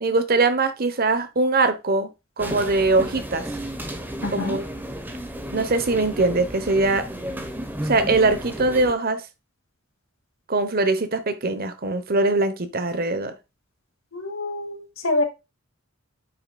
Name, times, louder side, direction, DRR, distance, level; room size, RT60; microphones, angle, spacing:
voice 1, 0.0-2.1 2.4-3.5 4.3-4.6 5.5-7.1 7.8-9.2 10.5-13.3, right 3 dB, 45° right, 1.0 m, -22 dB
sound 1, 2.4-8.9, right 1 dB, 10° right, 1.1 m, -33 dB
voice 2, 4.2-4.6 14.1-14.8 15.0-15.2, left 2 dB, 80° left, 2.3 m, -25 dB
9.6 x 5.8 x 2.3 m
head